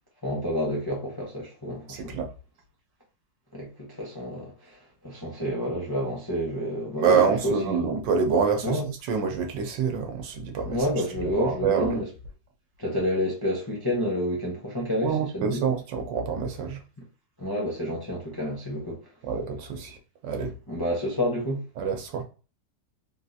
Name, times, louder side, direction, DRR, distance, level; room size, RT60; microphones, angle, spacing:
voice 1, 0.2-2.1 3.5-7.2 7.4-8.0 8.6-8.9 10.6-12.1 12.8-15.6 17.4-19.0 20.7-21.6, equal, 25° left, 0.5 m, -29 dB
voice 2, 1.9-2.3 7.0-10.8 11.2-12.0 15.0-16.8 19.3-20.0 20.2-20.5 21.8-22.2, right 6 dB, 80° right, 1.4 m, -26 dB
3.7 x 2.4 x 2.6 m
omnidirectional pair, 1.9 m